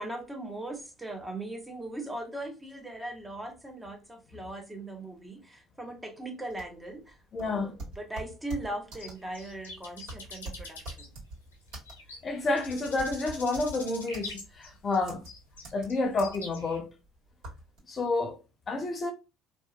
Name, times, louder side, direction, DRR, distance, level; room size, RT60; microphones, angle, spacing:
voice 1, 0.0-11.1, right 1 dB, 10° right, 0.7 m, -39 dB
sound 1, 6.5-17.8, right 2 dB, 60° right, 1.5 m, -44 dB
voice 2, 7.3-7.8 12.2-15.2 15.7-16.9 17.9-18.4 18.7-19.1, left 3 dB, 35° left, 0.7 m, -29 dB
sound 2, 9.0-16.8, left 3 dB, 90° left, 0.7 m, -45 dB
2.8 x 2.2 x 2.3 m
hypercardioid pair, 60°, 0 cm